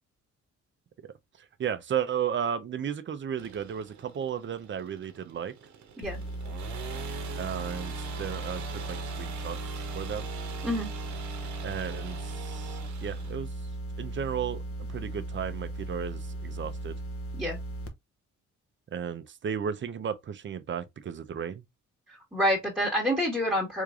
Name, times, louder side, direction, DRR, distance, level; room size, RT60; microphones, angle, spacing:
voice 1, 1.4-5.5 7.3-10.3 11.6-13.5 14.0-14.6 14.9-17.0 18.9-21.6, right 8 dB, 40° right, 0.6 m, -34 dB
sound 1, 3.4-13.4, right 6 dB, 70° right, 0.9 m, -43 dB
sound 2, 6.0-17.9, right 1 dB, 50° left, 0.9 m, -37 dB
voice 2, 22.3-23.8, equal, 5° right, 1.3 m, -27 dB
3.5 x 3.2 x 2.4 m
cardioid pair, 90°, 30 cm